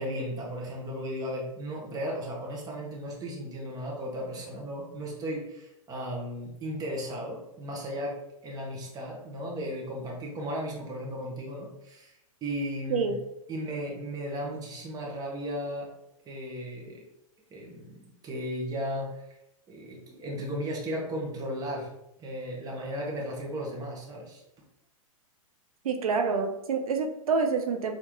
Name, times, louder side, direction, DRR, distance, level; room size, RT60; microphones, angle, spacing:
voice 1, 0.0-8.2 8.4-13.1 13.5-15.9 16.3-17.0 17.5-19.3 19.7-21.9 22.2-24.4, equal, 20° right, -2 dB, 1.3 m, -35 dB
voice 2, 25.8-27.9, right 5 dB, 85° right, 6 dB, 0.7 m, -27 dB
4.4 x 3.1 x 3.7 m, 0.86 s
hypercardioid pair, 125°, 18 cm